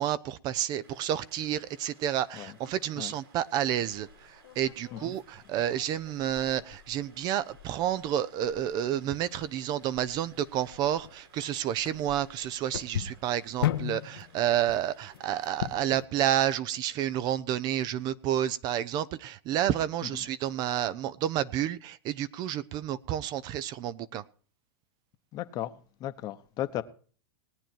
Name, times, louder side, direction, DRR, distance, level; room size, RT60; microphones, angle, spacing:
voice 1, 0.0-24.2, right 11 dB, 35° right, 0.6 m, -30 dB
sound 1, 0.8-15.8, right 3 dB, 75° right, 7.2 m, -60 dB
sound 2, 3.9-16.1, left 12 dB, 70° left, 1.0 m, -39 dB
voice 2, 25.3-25.7 26.0-26.8, left 13 dB, 30° left, 1.0 m, -35 dB
18.5 x 9.0 x 4.5 m
hypercardioid pair, 135°, 13 cm